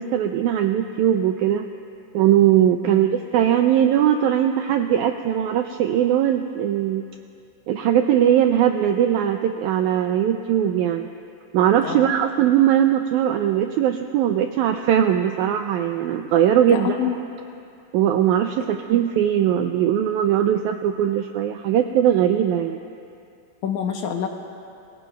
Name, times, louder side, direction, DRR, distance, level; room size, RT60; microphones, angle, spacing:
voice 1, 0.0-1.7 2.1-7.0 7.7-11.1 11.5-17.2 17.9-22.8, right 10 dB, 85° right, 6 dB, 1.7 m, -20 dB
voice 2, 16.7-17.2 23.6-24.3, left 8 dB, 70° left, 3 dB, 2.1 m, -26 dB
28.0 x 22.5 x 2.3 m, 2.6 s
omnidirectional pair, 4.0 m